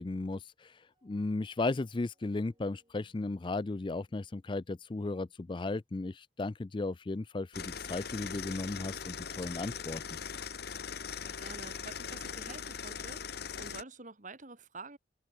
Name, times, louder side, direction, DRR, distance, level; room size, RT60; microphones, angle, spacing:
voice 1, 0.0-10.0, left 2 dB, 25° left, 0.4 m, -35 dB
sound 1, 0.9-6.1, right 1 dB, 25° right, 7.3 m, -75 dB
sound 2, 7.5-13.8, left 7 dB, 55° left, 1.1 m, -40 dB
voice 2, 11.2-15.0, right 3 dB, 45° right, 2.4 m, -48 dB
head